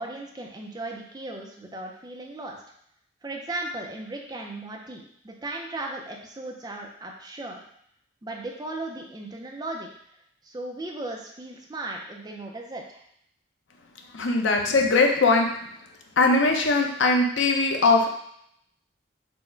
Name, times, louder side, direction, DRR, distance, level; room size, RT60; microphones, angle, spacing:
voice 1, 0.0-2.6 3.2-7.6 8.2-9.9 10.4-13.0, right 2 dB, 20° right, 0 dB, 0.4 m, -36 dB
voice 2, 14.1-15.5 16.2-18.1, left 3 dB, 75° left, 2 dB, 0.6 m, -20 dB
4.4 x 2.1 x 4.4 m, 0.70 s
head